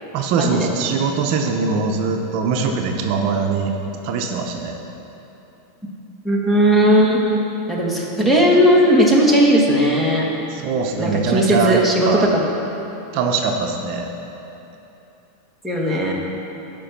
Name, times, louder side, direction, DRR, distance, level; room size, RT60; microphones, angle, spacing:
voice 1, 0.1-3.7 4.0-4.7 10.5-12.3 13.1-14.1, right 4 dB, 55° right, 3 dB, 0.8 m, -22 dB
voice 2, 6.2-7.2 7.7-10.2 11.0-12.4 15.6-16.1, equal, 5° left, -3 dB, 1.6 m, -16 dB
12.0 x 5.3 x 5.9 m, 3.0 s
supercardioid pair, 130°, 0 cm